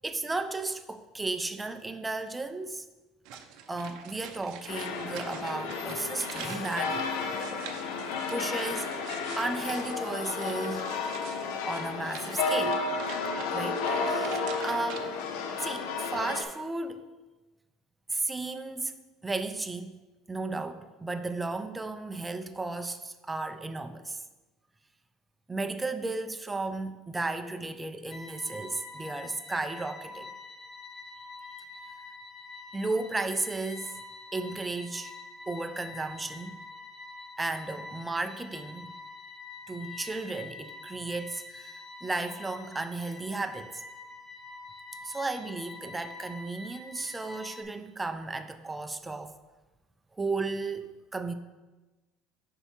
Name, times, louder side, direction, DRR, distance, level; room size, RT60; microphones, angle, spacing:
voice 1, 0.0-2.9 3.3-3.4 3.7-7.4 8.3-9.0 9.3-10.9 11.6-12.9 13.5-15.1 15.6-17.0 18.1-19.0 19.2-20.0 20.3-24.2 25.5-30.3 32.7-34.0 34.3-35.1 35.5-36.6 37.4-38.9 39.7-43.8 45.0-49.3 50.2-51.3, right 3 dB, 10° right, 8 dB, 0.4 m, -34 dB
sound 1, 3.3-15.0, right 8 dB, 75° right, 0.6 m, -46 dB
sound 2, 4.7-16.4, left 4 dB, 85° left, 0.6 m, -32 dB
sound 3, 28.1-47.6, left 3 dB, 25° left, 0.8 m, -46 dB
5.6 x 4.5 x 4.4 m, 1.2 s
cardioid pair, 125°, 0 cm